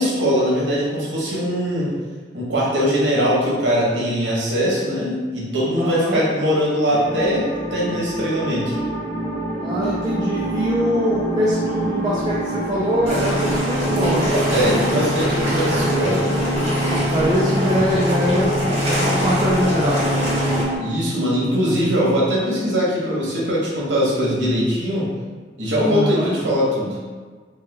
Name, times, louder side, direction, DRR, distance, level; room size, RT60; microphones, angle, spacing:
voice 1, 0.0-1.9 2.3-8.8 14.5-16.3 20.7-25.1 25.6-27.0, equal, 80° right, -6 dB, 1.0 m, -21 dB
voice 2, 5.7-6.2 9.6-14.4 16.9-20.1 25.9-26.3, equal, 20° right, -8 dB, 0.4 m, -23 dB
sound 1, 6.9-20.8, right 1 dB, 15° left, 0.7 m, -27 dB
sound 2, 13.1-20.6, equal, 35° right, 1.0 m, -22 dB
3.2 x 2.2 x 3.3 m, 1.4 s
head